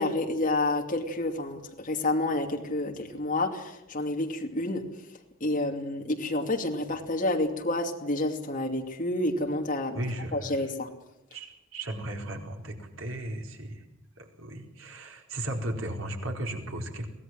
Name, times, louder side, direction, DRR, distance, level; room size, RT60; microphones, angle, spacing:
voice 1, 0.0-4.8 5.4-10.0 10.3-10.9, left 2 dB, 40° left, 2 dB, 2.7 m, -29 dB
voice 2, 9.9-10.7 11.3-13.8 14.2-17.1, right 1 dB, 75° right, 3 dB, 4.5 m, -36 dB
24.0 x 17.5 x 7.7 m, 0.90 s
head